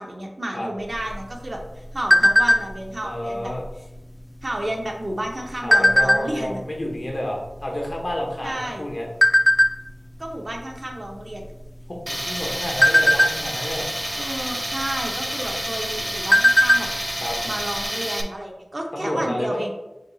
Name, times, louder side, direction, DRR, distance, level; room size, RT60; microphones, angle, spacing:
voice 1, 0.0-3.5 4.4-6.6 8.4-8.9 10.2-11.5 14.1-16.9 17.4-19.7, right 1 dB, 55° right, 0 dB, 0.8 m, -31 dB
sound 1, 0.9-2.9 3.4-3.7 3.9-4.3 5.0-6.5 7.1-7.2 7.5-8.7 9.2-9.7 10.2-10.5 10.8-11.0 11.4-12.0 12.4-13.8 14.9-15.0 15.4-15.5 15.9-17.0 17.2-17.3 17.7-17.8, left 1 dB, 30° left, 0.6 m, -17 dB
voice 2, 3.0-3.6 5.6-9.1 11.9-13.9 17.2-17.4 18.9-19.6, left 1 dB, 65° left, -1 dB, 1.1 m, -29 dB
Tools, 12.1-18.2, equal, 15° right, 0.5 m, -29 dB
5.1 x 2.4 x 4.0 m, 0.97 s
wide cardioid pair, 55°, 0 cm